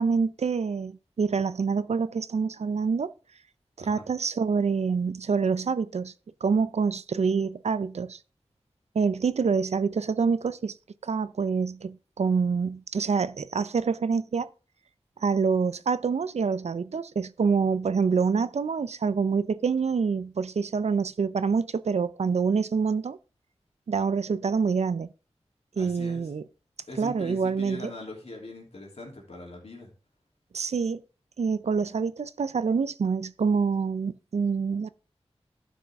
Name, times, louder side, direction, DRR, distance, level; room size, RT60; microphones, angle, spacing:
voice 1, 0.0-3.1 3.8-6.1 6.4-8.2 8.9-10.7 11.0-14.5 15.2-23.2 23.9-25.1 25.8-26.4 27.0-27.9 30.5-31.0 31.4-34.9, right 5 dB, 75° right, 0.5 m, -26 dB
voice 2, 25.7-26.3 26.9-29.9, left 2 dB, 65° left, 3.0 m, -41 dB
12.0 x 6.0 x 3.6 m
wide cardioid pair, 70°, 11 cm